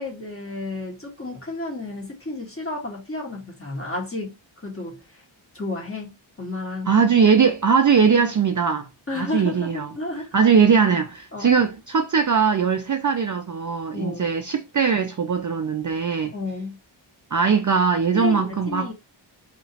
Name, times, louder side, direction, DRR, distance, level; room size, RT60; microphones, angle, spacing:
voice 1, 0.0-4.4 4.6-5.2 5.5-6.9 9.1-10.3 11.3-11.5 13.9-14.3 16.3-16.8 18.1-18.9, left 2 dB, 25° left, 1.6 m, -32 dB
voice 2, 6.9-8.9 9.2-9.9 10.3-16.3 17.3-18.9, right 6 dB, 40° right, 0.4 m, -20 dB
2.9 x 2.9 x 2.8 m
wide cardioid pair, 80°, 49 cm